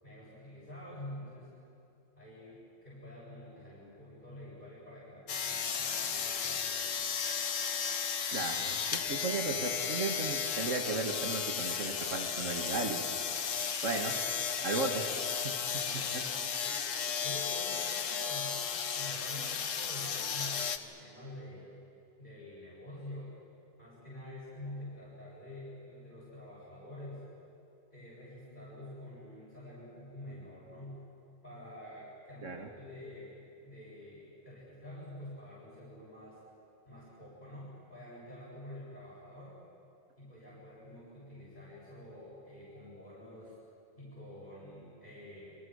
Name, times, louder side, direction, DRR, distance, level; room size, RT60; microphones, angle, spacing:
voice 1, 0.0-1.5 2.2-6.9 15.8-16.8 17.2-18.7 18.9-21.8 22.2-23.4 23.8-27.3 27.9-31.0 31.4-33.4 33.6-36.4 36.9-39.6 40.2-43.6 44.0-45.6, left 1 dB, 40° left, -9 dB, 7.8 m, -48 dB
sound 1, 5.3-20.8, left 7 dB, 75° left, 1.5 m, -34 dB
voice 2, 8.3-13.1 13.8-14.2 14.6-15.0 15.4-15.6 16.1-16.2 32.4-32.7, right 3 dB, 75° right, 3 dB, 2.2 m, -35 dB
28.5 x 25.5 x 6.5 m, 2.7 s
omnidirectional pair, 1.3 m